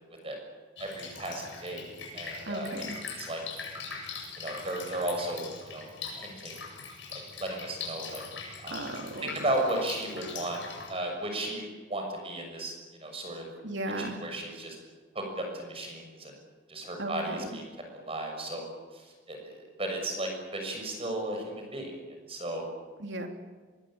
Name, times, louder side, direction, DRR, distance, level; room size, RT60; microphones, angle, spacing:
Drip, 0.8-10.9, left 5 dB, 75° left, 7.9 m, -42 dB
voice 1, 0.8-2.7 3.2-3.4 4.4-5.9 6.2-6.6 7.1-8.2 8.6-8.8 9.2-10.6 10.9-12.7 13.0-13.5 14.0-14.8 15.1-16.3 16.7-17.6 17.9-18.6 18.9-22.7, right 1 dB, 30° right, 3 dB, 6.6 m, -35 dB
voice 2, 2.5-3.0 8.7-9.4 13.6-14.2 17.0-17.5 23.0-23.3, right 1 dB, 70° right, 4 dB, 3.4 m, -35 dB
23.5 x 21.0 x 9.0 m, 1.4 s
head